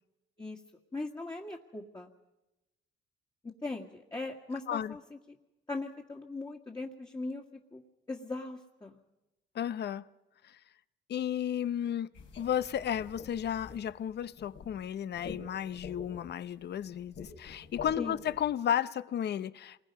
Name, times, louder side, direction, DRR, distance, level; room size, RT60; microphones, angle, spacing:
voice 1, 0.9-2.1 3.6-5.2 5.7-7.8 8.1-9.0 18.0-18.2, left 3 dB, 20° left, 1.9 m, -39 dB
voice 2, 9.5-10.1 10.4-10.6 11.1-12.1 12.4-19.8, left 9 dB, 60° left, 0.7 m, -33 dB
sound 1, 12.1-18.4, left 5 dB, 75° left, 4.2 m, -47 dB
28.0 x 21.0 x 5.4 m
cardioid pair, 90°, 20 cm